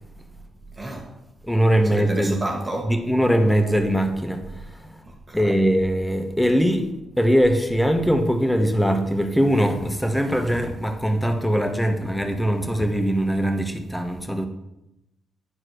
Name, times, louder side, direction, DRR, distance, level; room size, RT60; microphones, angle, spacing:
voice 1, 0.8-1.1 1.8-2.9 5.1-5.5, right 1 dB, 30° right, 1.6 m, -31 dB
voice 2, 1.4-2.5 2.8-4.9 5.3-14.5, equal, 5° left, 1.4 m, -21 dB
9.4 x 4.4 x 6.3 m
supercardioid pair, 50°, 0 cm